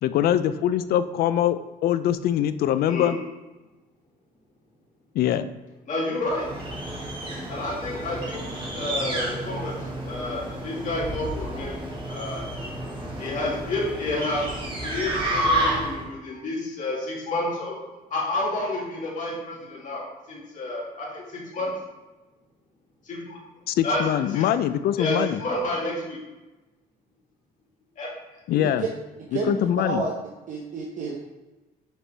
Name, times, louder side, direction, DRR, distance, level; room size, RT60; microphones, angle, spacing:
voice 1, 0.0-3.2 5.1-5.5 23.7-25.4 28.5-28.9 29.3-30.1, left 11 dB, 65° left, 13 dB, 0.4 m, -23 dB
voice 2, 2.9-3.2 5.9-6.5 7.5-11.8 12.0-12.5 13.2-14.5 14.8-17.8 18.1-21.7 23.0-23.4 23.8-24.0 24.3-24.4 25.0-26.2 28.0-28.1, left 2 dB, 50° left, -4 dB, 2.1 m, -30 dB
sound 1, 6.2-16.1, right 1 dB, 30° right, 1.5 m, -30 dB
voice 3, 30.5-31.2, right 4 dB, 50° right, -1 dB, 0.8 m, -29 dB
6.6 x 4.5 x 3.4 m, 1.1 s
cardioid pair, 110°, 17 cm